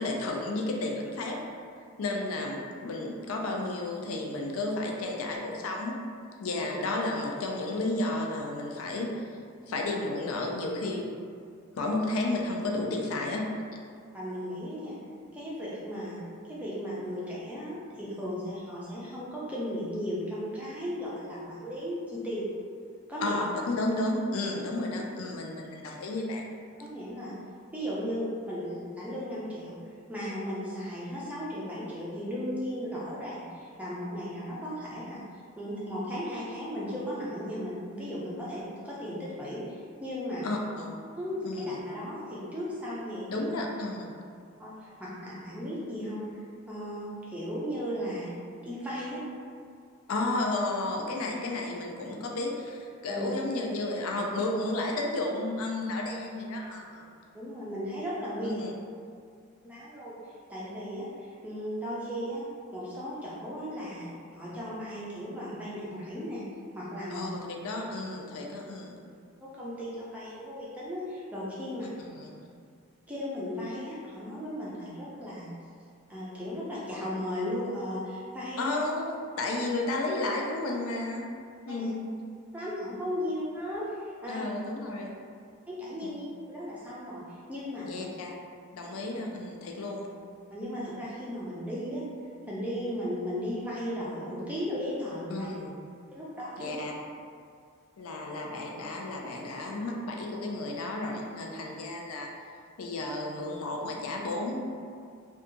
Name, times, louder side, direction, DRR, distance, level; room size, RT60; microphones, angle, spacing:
voice 1, 0.0-1.4 2.0-5.9 6.4-9.3 9.7-11.1 11.8-13.4 23.2-26.5 40.4-41.0 41.4-41.7 43.3-44.1 50.1-57.1 58.4-58.7 67.1-69.0 72.0-72.4 78.6-81.3 81.7-82.1 84.3-85.1 86.0-86.2 87.8-88.3 88.7-90.1 95.3-95.7 96.6-96.9 98.0-102.3 102.8-104.6, left 2 dB, 85° left, 0 dB, 0.4 m, -32 dB
voice 2, 14.1-15.0 15.3-16.2 16.5-22.5 23.1-23.4 26.8-27.4 27.7-29.8 30.1-35.2 35.6-40.5 41.2-43.4 44.6-46.2 46.7-48.3 48.6-49.2 53.1-53.3 57.3-58.6 59.6-62.4 62.7-64.1 64.4-66.4 66.7-67.3 69.4-71.9 73.1-75.5 76.1-78.8 81.7-81.9 82.5-84.5 85.7-88.1 90.5-92.0 92.5-95.5 96.1-96.7, equal, 5° right, -8 dB, 0.4 m, -36 dB
2.7 x 2.3 x 2.5 m, 2.2 s
head